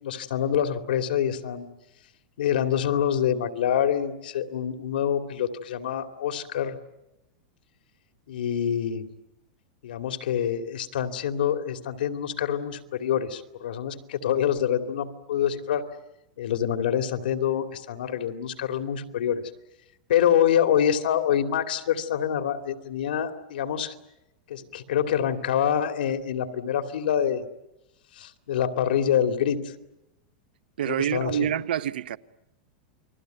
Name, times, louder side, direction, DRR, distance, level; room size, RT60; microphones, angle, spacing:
voice 1, 0.0-1.7 2.4-6.8 8.3-9.1 9.8-15.8 16.4-19.4 20.1-23.9 24.5-27.4 28.2-29.6 30.9-31.5, left 9 dB, 85° left, 2.7 m, -26 dB
voice 2, 30.8-32.2, right 10 dB, 85° right, 1.0 m, -27 dB
29.5 x 21.5 x 9.3 m
supercardioid pair, 175°, 5 cm